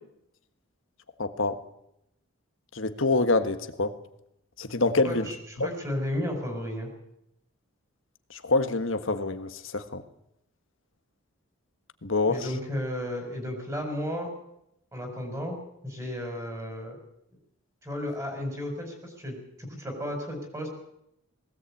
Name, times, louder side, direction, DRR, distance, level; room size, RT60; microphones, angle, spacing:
voice 1, 1.2-1.6 2.7-3.9 4.6-5.3 5.6-5.7 8.4-10.0 12.0-12.5, left 3 dB, 60° left, 10 dB, 1.5 m, -26 dB
voice 2, 5.0-6.9 12.3-14.3 14.9-15.6 15.8-17.0 17.8-20.7, left 1 dB, 15° right, 3 dB, 4.8 m, -33 dB
20.5 x 17.5 x 8.6 m, 0.81 s
head